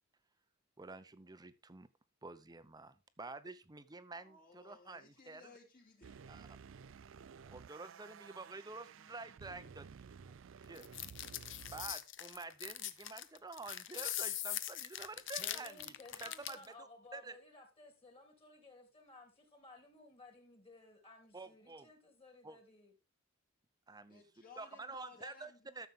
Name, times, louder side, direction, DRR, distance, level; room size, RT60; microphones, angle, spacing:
voice 1, 0.8-1.9 2.2-5.4 6.3-6.5 7.5-9.9 10.2-10.3 10.6-10.8 11.7-15.9 16.2-16.6 17.1-17.4 21.3-21.9 22.4-22.6 23.9-24.2 24.6-25.5 25.8-25.9, right 3 dB, 20° right, 0.7 m, -49 dB
voice 2, 4.1-6.2 24.0-25.9, left 4 dB, 45° left, 3.4 m, -59 dB
sound 1, 6.0-12.0, right 6 dB, 70° right, 0.4 m, -54 dB
sound 2, 10.8-16.7, left 13 dB, 65° left, 0.8 m, -41 dB
voice 3, 15.4-22.9, left 2 dB, 30° left, 3.2 m, -58 dB
13.5 x 7.0 x 3.6 m
head